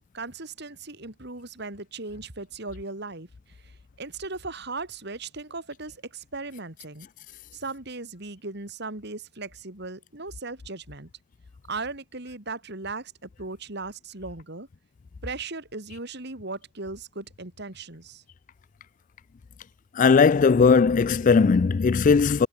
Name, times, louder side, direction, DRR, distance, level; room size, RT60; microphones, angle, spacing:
voice 1, 0.0-7.1 7.5-11.1 11.7-14.7 15.2-18.2, right 3 dB, 60° right, 3.3 m, -37 dB
voice 2, 20.0-22.5, left 5 dB, 40° left, 0.4 m, -18 dB
head